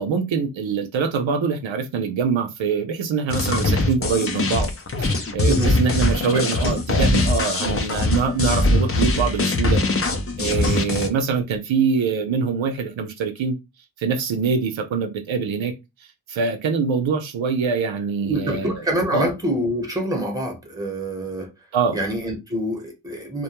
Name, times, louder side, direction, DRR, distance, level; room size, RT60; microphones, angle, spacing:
voice 1, 0.0-4.7 5.0-9.8 10.4-13.6 14.0-15.7 16.3-18.9 19.1-19.3 21.7-22.0, right 5 dB, 75° right, 0.6 m, -24 dB
sound 1, 3.3-11.1, left 2 dB, 30° left, 0.5 m, -22 dB
voice 2, 18.2-21.5 21.9-23.4, right 1 dB, 10° right, 1.0 m, -26 dB
2.2 x 2.1 x 2.9 m
cardioid pair, 40°, 46 cm